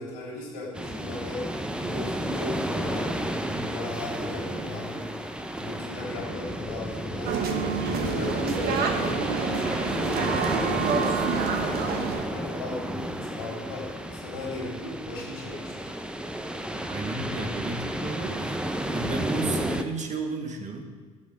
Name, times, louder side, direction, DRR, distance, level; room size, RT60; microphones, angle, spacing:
voice 1, 0.0-5.1 5.6-7.5 7.8-9.6 9.9-15.9, left 2 dB, 85° left, -3 dB, 3.3 m, -37 dB
sound 1, 0.7-19.8, right 1 dB, 5° right, 0.7 m, -32 dB
sound 2, 7.3-12.2, right 6 dB, 55° right, 1.3 m, -28 dB
voice 2, 16.9-18.6 18.9-20.8, right 3 dB, 40° right, 3 dB, 1.7 m, -33 dB
11.5 x 7.2 x 4.9 m, 1.5 s
hypercardioid pair, 65°, 19 cm